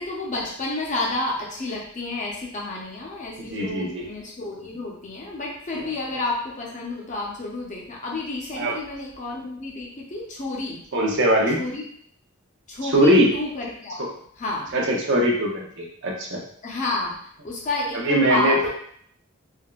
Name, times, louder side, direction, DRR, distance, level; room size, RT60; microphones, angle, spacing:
voice 1, 0.0-10.8 11.6-11.8 12.7-14.1 14.4-14.8 16.6-17.1 17.4-18.7, left 2 dB, 35° left, -3 dB, 0.6 m, -30 dB
voice 2, 3.4-4.1 5.8-5.9 8.6-8.8 10.9-11.6 12.8-13.3 14.0-14.1 14.7-16.4 18.0-18.7, equal, 55° right, -1 dB, 0.6 m, -21 dB
3.4 x 2.1 x 2.3 m, 0.63 s
head